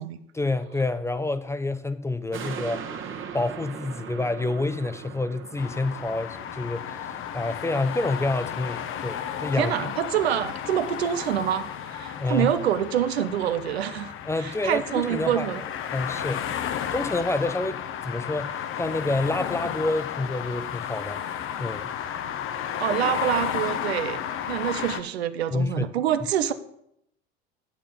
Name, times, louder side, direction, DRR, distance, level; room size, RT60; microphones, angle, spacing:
voice 1, 0.3-2.9 3.3-9.9 12.2-12.6 14.2-15.5 15.9-16.4 16.9-21.2 21.6-21.9 25.5-25.9, left 2 dB, 10° left, 0.5 m, -28 dB
sound 1, 2.3-9.0 9.4-9.5, right 7 dB, 40° right, 1.4 m, -40 dB
sound 2, 5.6-25.0, left 9 dB, 40° left, 0.8 m, -33 dB
voice 2, 9.6-14.1 14.4-15.6 22.8-26.5, right 10 dB, 80° right, 0.7 m, -26 dB
8.5 x 7.5 x 5.0 m
hypercardioid pair, 75°, 31 cm